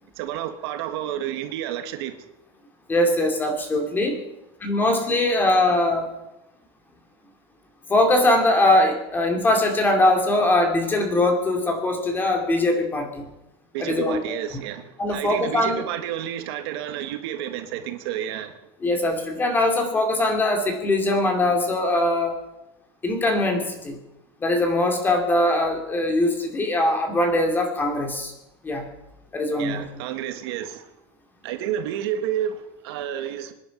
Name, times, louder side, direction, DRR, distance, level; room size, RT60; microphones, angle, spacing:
voice 1, 0.2-2.2 13.7-18.6 29.6-30.9 31.4-33.5, right 10 dB, 65° right, 1.7 m, -30 dB
voice 2, 2.9-4.2 4.6-6.1 7.9-13.3 13.8-14.2 15.0-15.8 18.8-22.4 23.0-24.0 24.4-28.3 28.6-28.9 29.3-29.9, left 1 dB, 15° left, 2.7 m, -21 dB
25.0 x 10.5 x 5.3 m
supercardioid pair, 160°, 14 cm